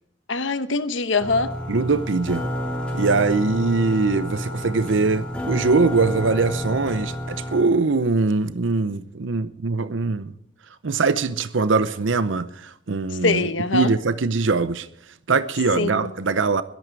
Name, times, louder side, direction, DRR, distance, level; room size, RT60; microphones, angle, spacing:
voice 1, 0.3-1.5 13.2-13.9 15.8-16.1, left 3 dB, 85° left, 1.1 m, -23 dB
sound 1, 1.2-7.6, equal, 5° left, 3.4 m, -30 dB
voice 2, 1.7-2.4 2.9-10.3 10.8-13.5 13.7-14.9 15.3-16.6, right 4 dB, 85° right, 0.7 m, -22 dB
21.5 x 11.0 x 4.7 m
head